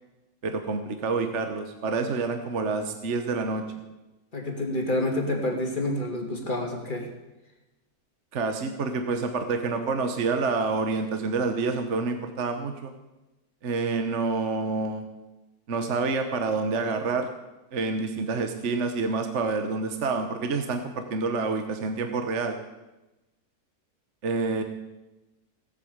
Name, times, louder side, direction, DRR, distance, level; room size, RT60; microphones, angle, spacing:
voice 1, 0.4-3.6 8.3-12.9 13.6-15.0 15.7-17.3 17.7-22.6 24.2-24.6, right 4 dB, 50° right, 6 dB, 1.3 m, -28 dB
voice 2, 4.3-7.1, left 1 dB, 30° left, 2 dB, 2.5 m, -28 dB
17.0 x 8.4 x 7.9 m, 1.0 s
omnidirectional pair, 1.6 m